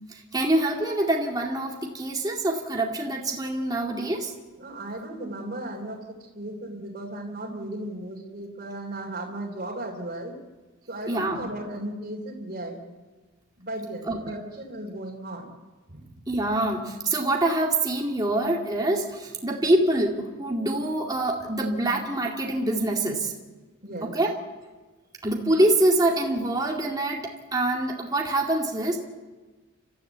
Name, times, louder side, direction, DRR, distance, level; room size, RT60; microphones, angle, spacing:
voice 1, 0.0-4.3 11.1-11.4 14.1-14.2 16.3-23.3 24.1-24.4 25.2-29.0, right 1 dB, 20° right, 0 dB, 2.2 m, -25 dB
voice 2, 4.6-10.3 10.9-12.8 13.6-15.5 15.9-16.1 23.8-24.2, right 1 dB, 45° right, -2 dB, 3.3 m, -36 dB
30.0 x 14.0 x 8.1 m, 1.3 s
head